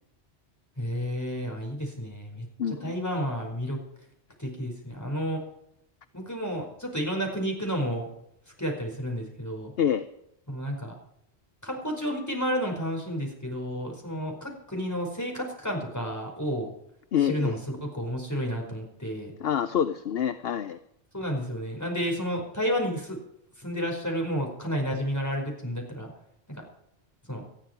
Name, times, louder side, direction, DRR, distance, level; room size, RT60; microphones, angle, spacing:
voice 1, 0.8-2.4 2.8-3.8 4.4-5.4 6.1-8.1 8.6-9.7 10.5-10.9 11.6-16.7 17.2-19.3 21.1-23.2 23.6-26.1 26.5-26.6 27.3-27.4, equal, 15° left, 1 dB, 5.1 m, -31 dB
voice 2, 2.6-2.9 9.8-10.1 17.1-17.5 19.4-20.8, left 9 dB, 65° left, 10 dB, 0.9 m, -26 dB
19.5 x 13.5 x 4.6 m, 0.77 s
omnidirectional pair, 1.1 m